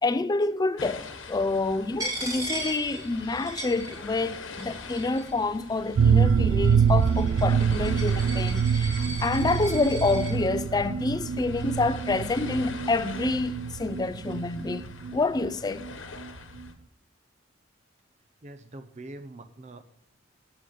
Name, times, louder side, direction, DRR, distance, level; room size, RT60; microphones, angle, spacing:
voice 1, 0.0-15.9, left 3 dB, 20° left, 0.4 m, -28 dB
sound 1, 0.8-16.7, left 4 dB, 75° left, 1.1 m, -44 dB
Coin (dropping), 2.0-4.3 4.6-5.4 6.1-10.3, right 2 dB, 20° right, 2.8 m, -37 dB
sound 2, 6.0-15.6 15.8-15.9 16.2-16.3, right 6 dB, 85° right, 0.3 m, -25 dB
voice 2, 18.4-19.8, right 2 dB, 35° right, 0.6 m, -43 dB
12.0 x 6.9 x 5.1 m
head